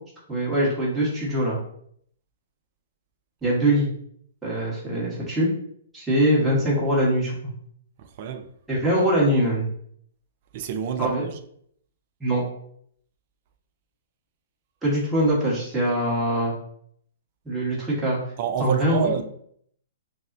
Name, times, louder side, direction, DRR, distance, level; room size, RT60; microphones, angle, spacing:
voice 1, 0.3-1.6 3.4-3.9 4.4-5.5 5.9-7.4 8.7-9.7 11.0-11.2 12.2-12.4 14.8-16.5 17.4-18.2 18.6-19.1, right 1 dB, 5° right, 1.2 m, -22 dB
voice 2, 8.0-8.5 10.5-11.4 18.4-19.2, right 8 dB, 40° right, 0.4 m, -28 dB
5.3 x 2.0 x 2.6 m
hypercardioid pair, 155°, 0 cm